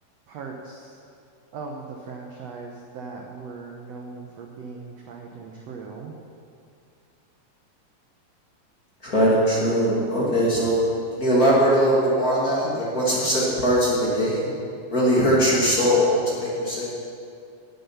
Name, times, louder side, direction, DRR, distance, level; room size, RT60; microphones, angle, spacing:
voice 1, 0.3-1.0 1.5-6.1, right 4 dB, 70° right, 1 dB, 1.5 m, -39 dB
voice 2, 9.0-10.8 11.1-14.5 14.9-16.9, equal, 30° left, -6 dB, 2.3 m, -21 dB
17.0 x 7.9 x 5.7 m, 2.4 s
omnidirectional pair, 4.1 m